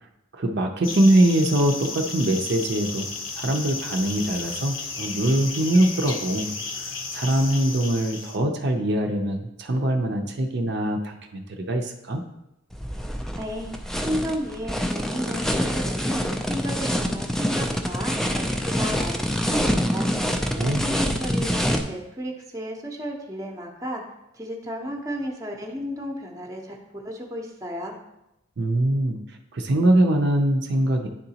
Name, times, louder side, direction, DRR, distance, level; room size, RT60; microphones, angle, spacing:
voice 1, 0.3-3.1 3.3-6.5 6.8-12.2 20.6-20.8 28.6-29.2 29.5-31.1, right 1 dB, 55° right, 3 dB, 0.5 m, -23 dB
sound 1, 0.8-8.4, left 4 dB, 70° left, 0.8 m, -33 dB
sound 2, 12.7-21.8, equal, ahead, 0.3 m, -26 dB
voice 2, 13.3-13.8 14.0-20.1 20.6-24.0 24.3-28.0, equal, 15° right, 1 dB, 0.7 m, -33 dB
10.0 x 3.9 x 2.8 m, 0.89 s
head